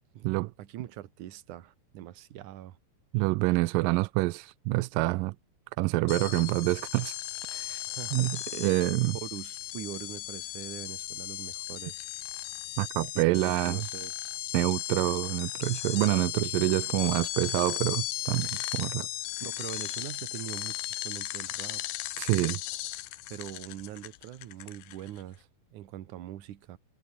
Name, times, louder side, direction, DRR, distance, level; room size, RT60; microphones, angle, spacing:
voice 1, 0.6-2.8 7.9-8.6 9.1-12.1 13.1-14.1 19.4-21.8 23.3-26.8, right 12 dB, 60° right, 2.5 m, -42 dB
voice 2, 3.1-5.3 5.8-7.1 7.5-7.8 8.1-9.2 12.8-13.9 14.5-19.1 22.2-22.6, right 22 dB, 85° right, 1.9 m, -27 dB
sound 1, 6.1-25.2, left 15 dB, 75° left, 2.9 m, -36 dB
omnidirectional pair, 4.5 m